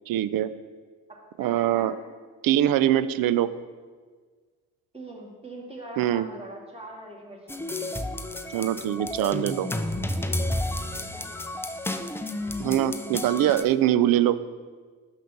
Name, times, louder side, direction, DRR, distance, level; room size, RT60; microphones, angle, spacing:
voice 1, 0.1-0.5 1.4-1.9 2.4-3.5 6.0-6.3 8.5-9.7 12.6-14.4, right 12 dB, 60° right, 15 dB, 0.5 m, -23 dB
voice 2, 1.1-1.9 4.9-7.9 10.9-11.3, right 1 dB, 15° right, -3 dB, 2.3 m, -42 dB
sound 1, 7.5-13.6, left 1 dB, 5° left, 0.5 m, -31 dB
5.8 x 5.7 x 5.8 m, 1.5 s
supercardioid pair, 55°, 40 cm